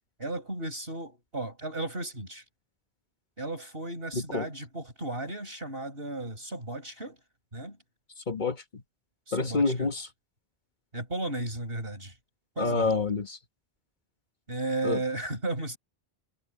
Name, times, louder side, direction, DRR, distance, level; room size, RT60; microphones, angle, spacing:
voice 1, 0.2-2.4 3.4-7.2 7.5-7.8 9.3-9.9 10.9-12.1 12.6-12.9 14.5-15.8, right 2 dB, 70° right, 7.6 m, -34 dB
voice 2, 4.1-4.5 8.3-8.8 9.3-10.1 12.6-13.4 14.8-15.0, left 3 dB, 50° left, 1.4 m, -28 dB
omnidirectional pair, 1.0 m